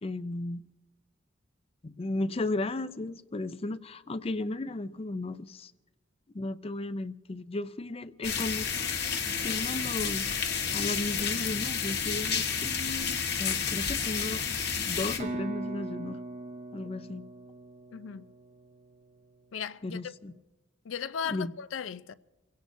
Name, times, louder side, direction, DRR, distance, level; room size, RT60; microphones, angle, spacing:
voice 1, 0.0-0.6 1.8-5.7 6.3-10.3 10.7-14.4 14.8-16.2 16.7-17.2 19.8-20.3 21.2-21.5, left 2 dB, 30° left, 0.5 m, -35 dB
sound 1, 8.2-15.2, left 6 dB, 60° left, 1.4 m, -30 dB
sound 2, 15.2-19.0, right 2 dB, 40° right, 0.7 m, -40 dB
voice 2, 17.9-18.2 19.5-20.1 20.9-22.1, left 7 dB, 90° left, 0.5 m, -36 dB
29.5 x 17.0 x 2.7 m
head